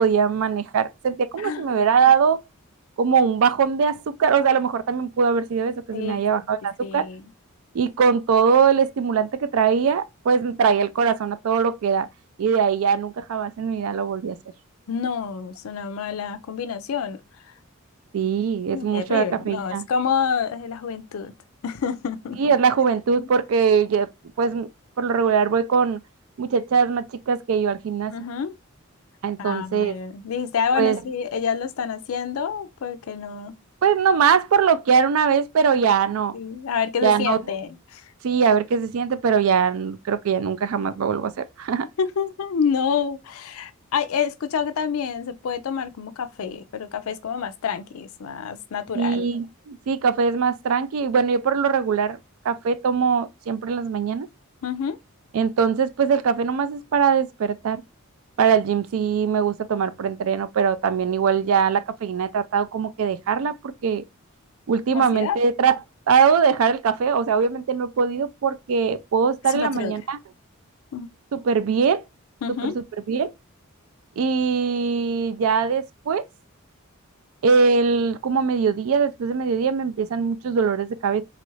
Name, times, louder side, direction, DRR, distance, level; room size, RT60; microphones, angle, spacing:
voice 1, 0.0-2.4 3.0-7.1 7.7-12.1 12.4-14.4 18.1-19.8 22.4-24.1 24.4-24.7 25.0-26.0 26.4-28.1 29.2-29.9 30.7-31.0 33.8-36.3 37.0-37.4 38.2-41.9 48.9-52.2 52.5-54.3 55.3-57.8 58.4-64.0 64.7-65.7 66.1-70.2 71.3-72.0 72.6-73.3 74.2-76.2 77.4-81.2, right 6 dB, 65° right, 0.4 m, -21 dB
voice 2, 5.9-6.2 6.8-7.3 14.9-17.2 17.4-17.5 18.7-21.3 21.6-22.5 23.2-23.3 28.1-28.6 29.4-33.6 36.3-38.1 42.0-49.3 54.6-55.0 64.9-65.4 69.5-69.9 70.9-71.1 72.4-72.8, left 6 dB, 70° left, 0.4 m, -28 dB
3.0 x 2.4 x 3.0 m
head